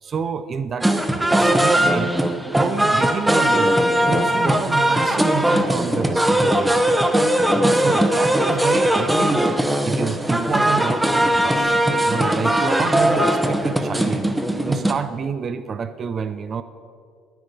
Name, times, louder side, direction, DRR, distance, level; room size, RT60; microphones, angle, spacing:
voice 1, 0.0-2.1 2.5-7.1 7.5-11.8 12.1-14.3 14.7-16.6, right 6 dB, 40° right, 12 dB, 0.5 m, -28 dB
sound 1, 0.8-14.9, right 1 dB, 10° right, 0.9 m, -19 dB
11.0 x 9.2 x 5.1 m, 2.2 s
supercardioid pair, 70°, 0 cm